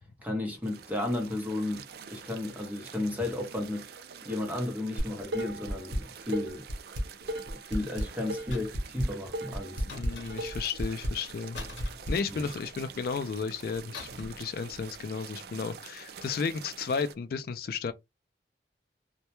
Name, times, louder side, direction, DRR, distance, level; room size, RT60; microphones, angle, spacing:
voice 1, 0.2-3.9 4.2-6.7 7.4-9.8 12.3-12.5, left 2 dB, 10° right, 0.7 m, -33 dB
sound 1, 0.6-17.1, right 7 dB, 60° right, 0.3 m, -47 dB
Dishes pots and pans, 5.0-6.0 6.3-12.1, equal, 85° right, 0.7 m, -33 dB
sound 2, 8.5-9.0 9.9-10.7 11.5-12.7 13.9-14.5 14.7-14.9, left 2 dB, 80° left, 0.8 m, -44 dB
voice 2, 9.9-11.6 12.1-17.9, left 5 dB, 55° left, 0.3 m, -33 dB
2.2 x 2.1 x 2.9 m
head